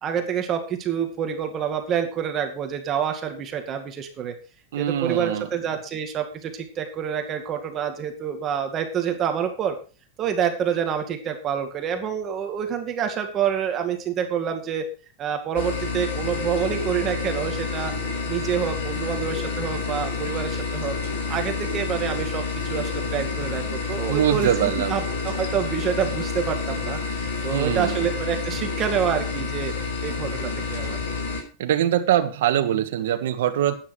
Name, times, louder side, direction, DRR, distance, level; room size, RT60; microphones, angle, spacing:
voice 1, 0.0-4.3 4.7-9.8 10.2-14.8 15.2-17.9 18.3-21.0 21.3-29.7 30.0-31.0, right 8 dB, 25° right, 5 dB, 2.2 m, -27 dB
voice 2, 4.7-5.4 24.1-25.0 27.5-28.0 31.6-33.8, right 11 dB, 75° right, 6 dB, 1.6 m, -23 dB
sound 1, 15.6-31.4, left 4 dB, 65° left, 4.7 m, -29 dB
12.5 x 9.5 x 4.9 m, 0.36 s
supercardioid pair, 165°, 0 cm